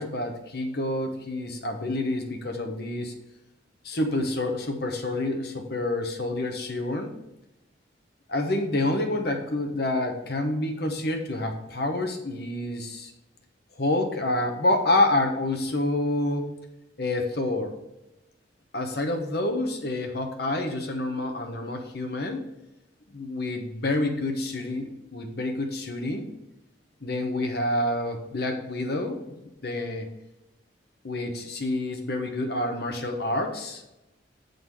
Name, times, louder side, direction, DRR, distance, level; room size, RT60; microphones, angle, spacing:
voice 1, 0.0-3.1 3.8-7.1 8.3-13.1 13.7-16.5 17.0-17.7 18.7-22.4 23.1-26.3 27.0-29.4 29.6-30.1 31.0-33.8, left 2 dB, 55° left, 4 dB, 1.0 m, -28 dB
7.2 x 3.9 x 4.8 m, 0.95 s
head